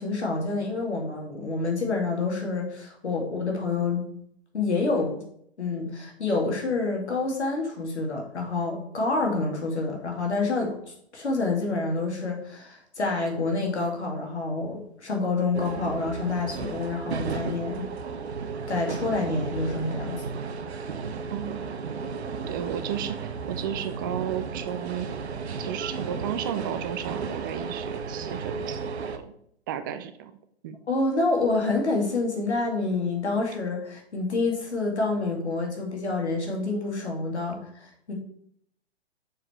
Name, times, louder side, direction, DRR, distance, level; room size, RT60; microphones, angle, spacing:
voice 1, 0.0-4.1 4.5-5.2 5.6-17.8 18.7-20.2 30.9-38.1, left 3 dB, 80° left, 1 dB, 2.4 m, -28 dB
sound 1, 15.5-29.2, right 5 dB, 70° right, 0.9 m, -34 dB
voice 2, 21.3-21.7 22.5-25.1 25.6-29.3 29.7-30.3 30.6-30.8, right 9 dB, 20° right, 10 dB, 0.3 m, -33 dB
6.6 x 4.7 x 4.4 m, 0.69 s
figure-of-eight pair, 120°, 33 cm